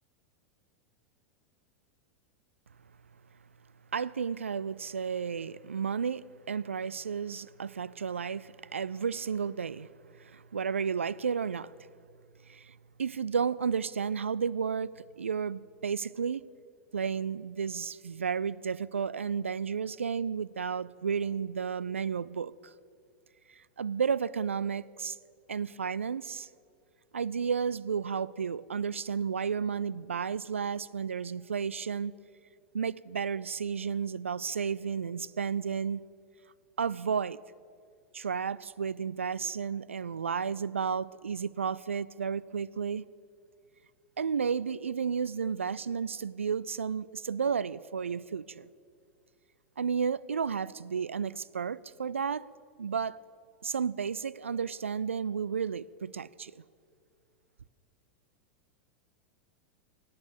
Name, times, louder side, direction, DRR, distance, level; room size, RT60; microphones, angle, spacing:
voice 1, 3.9-9.9 10.1-11.7 12.5-16.5 16.9-22.5 23.8-25.2 25.5-26.5 27.1-32.2 32.7-36.0 36.8-37.4 38.1-43.1 44.2-48.7 49.8-52.5 52.8-53.2 53.6-56.6, right 6 dB, 85° right, 0.3 m, -32 dB
18.0 x 8.8 x 7.3 m
figure-of-eight pair, 90°, 7 cm